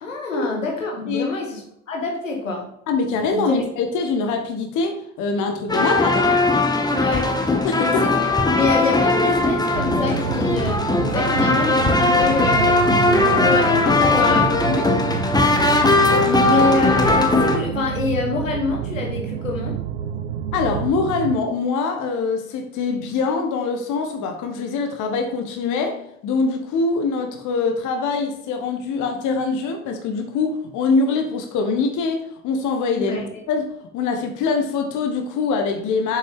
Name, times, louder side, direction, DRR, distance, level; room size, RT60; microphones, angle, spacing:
voice 1, 0.0-2.7 3.3-3.6 6.9-7.3 7.8-8.1 8.5-14.4 16.2-19.8 32.9-33.3, left 3 dB, 80° left, 1 dB, 1.3 m, -26 dB
voice 2, 2.9-6.4 7.6-8.0 13.9-14.1 14.7-15.0 20.5-33.2 33.5-36.2, left 4 dB, 50° left, 5 dB, 1.1 m, -23 dB
sound 1, 5.7-17.6, left 2 dB, 10° left, 1.0 m, -19 dB
sound 2, 9.7-21.4, right 10 dB, 75° right, 0.6 m, -29 dB
7.2 x 6.1 x 3.5 m, 0.76 s
figure-of-eight pair, 55°, 38 cm